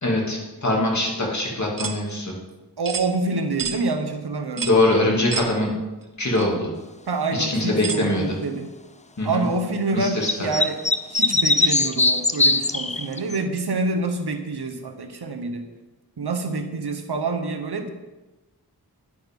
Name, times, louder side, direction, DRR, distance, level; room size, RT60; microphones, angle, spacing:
voice 1, 0.0-2.3 4.6-5.7 6.2-6.7 7.3-8.4 9.2-9.4 9.9-10.5 11.6-11.8, left 2 dB, 45° left, -2 dB, 2.8 m, -23 dB
sound 1, 1.8-2.0 2.9-3.1 3.6-3.8 4.6-4.8 5.3-5.5 6.4-6.5 7.8-8.1, right 6 dB, 55° right, 1.0 m, -29 dB
voice 2, 2.8-4.8 7.1-8.7 9.2-10.8 11.1-15.6 16.2-17.9, right 3 dB, 75° right, 6 dB, 1.2 m, -27 dB
sound 2, 10.2-13.4, left 3 dB, 20° left, 0.5 m, -20 dB
10.5 x 9.8 x 3.8 m, 1.1 s
wide cardioid pair, 65°, 39 cm